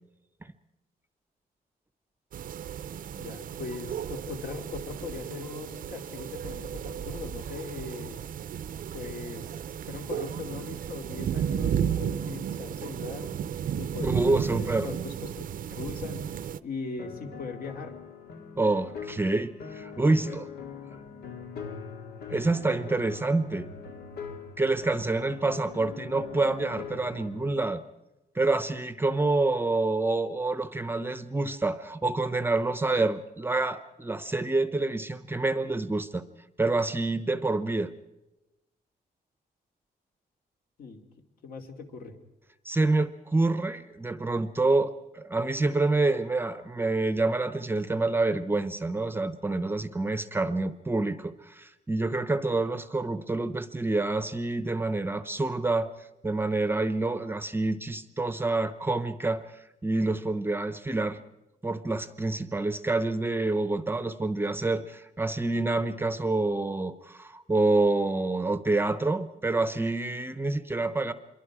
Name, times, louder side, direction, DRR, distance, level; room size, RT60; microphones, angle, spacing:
sound 1, 2.3-16.6, right 9 dB, 60° right, 0.6 m, -34 dB
voice 1, 3.2-8.2 8.9-9.5 9.8-13.3 13.8-16.3 16.6-18.0 20.1-20.4 40.8-41.0 41.4-42.2, left 4 dB, 65° left, 3 dB, 2.8 m, -39 dB
voice 2, 14.0-14.9 18.6-20.4 22.3-23.7 24.6-27.8 28.3-36.3 36.6-37.9 42.6-55.9 56.2-61.2 61.6-71.1, right 2 dB, 15° right, 11 dB, 0.8 m, -27 dB
sound 2, 17.0-27.4, left 6 dB, 85° left, 2.2 m, -42 dB
26.5 x 23.0 x 4.9 m, 0.97 s
cardioid pair, 150°, 16 cm